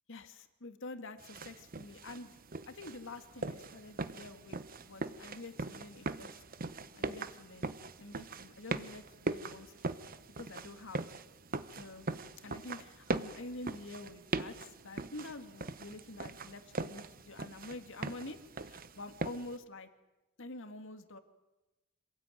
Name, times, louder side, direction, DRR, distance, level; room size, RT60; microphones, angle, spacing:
voice 1, 0.1-2.3 2.7-7.7 8.0-11.1 11.8-12.1 12.4-18.4 18.7-19.9 20.4-21.2, left 2 dB, 65° left, 8 dB, 2.2 m, -47 dB
sound 1, 1.2-19.6, right 3 dB, 45° right, 1.0 m, -41 dB
26.5 x 18.5 x 9.3 m, 1.0 s
head